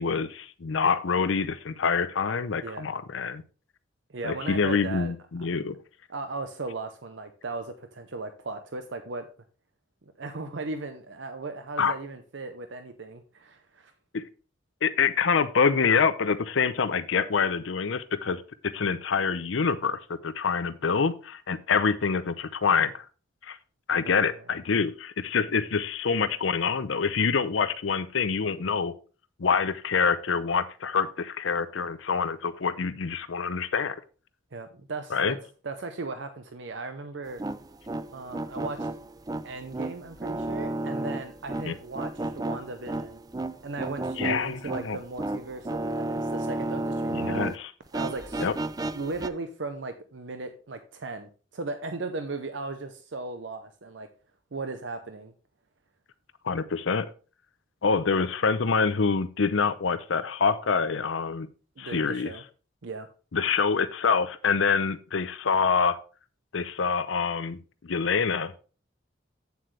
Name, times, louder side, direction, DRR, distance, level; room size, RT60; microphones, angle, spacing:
voice 1, 0.0-3.4 4.2-5.8 11.8-11.9 14.1-14.2 14.8-23.0 23.4-23.6 23.9-28.9 29.4-34.0 35.1-35.3 41.6-41.7 44.2-45.0 47.1-47.7 48.4-48.5 56.4-57.1 57.8-61.5 61.8-62.3 63.3-66.0 66.5-68.6, left 5 dB, 80° left, 13 dB, 0.6 m, -26 dB
voice 2, 2.6-2.9 4.1-5.1 6.1-9.3 10.2-13.9 24.0-24.4 34.5-35.4 35.6-37.4 38.1-38.9 39.4-43.2 43.6-47.5 47.9-48.5 48.9-54.1 54.5-55.3 61.8-62.4 62.8-63.1, right 3 dB, 70° right, 8 dB, 0.7 m, -37 dB
sound 1, 37.2-47.6 47.9-49.3, right 2 dB, 20° right, 0.3 m, -33 dB
8.5 x 7.6 x 3.2 m, 0.35 s
head